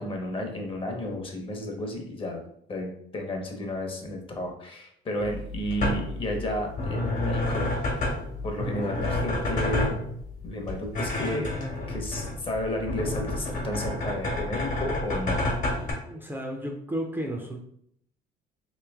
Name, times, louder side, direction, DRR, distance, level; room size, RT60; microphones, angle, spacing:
voice 1, 0.0-2.4 2.7-8.0 8.4-10.0 10.4-11.5 11.9-15.4, left 1 dB, 30° left, 2 dB, 0.9 m, -32 dB
sound 1, 5.2-15.9, left 2 dB, 45° left, 1.1 m, -30 dB
voice 2, 16.0-17.6, right 1 dB, 10° right, 1 dB, 0.5 m, -33 dB
3.1 x 2.9 x 3.5 m, 0.68 s
cardioid pair, 110°, 17 cm